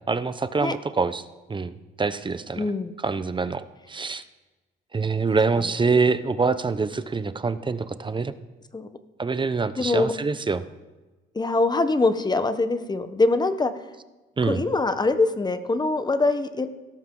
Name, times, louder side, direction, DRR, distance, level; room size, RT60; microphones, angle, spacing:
voice 1, 0.1-1.2 1.5-2.7 3.0-4.2 4.9-8.3 9.2-10.6 14.4-14.6, right 4 dB, 25° right, 12 dB, 0.8 m, -25 dB
voice 2, 2.6-3.0 8.7-8.9 9.8-10.1 11.3-13.7 14.4-16.7, left 3 dB, 20° left, 10 dB, 1.1 m, -23 dB
17.5 x 13.0 x 3.9 m, 1.2 s
cardioid pair, 90°, 20 cm